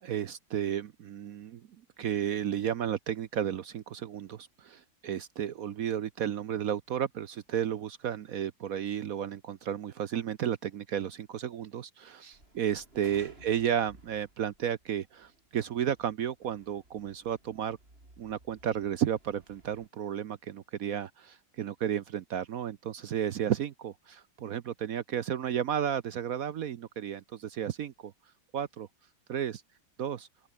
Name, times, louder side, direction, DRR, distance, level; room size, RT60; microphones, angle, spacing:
voice 1, 0.0-1.6 2.0-17.8 18.2-28.1 28.5-28.9 29.3-29.6 30.0-30.3, right 9 dB, 60° right, 1.0 m, -33 dB
sound 1, 12.3-19.9, right 2 dB, 30° right, 5.6 m, -58 dB
open air
omnidirectional pair, 2.0 m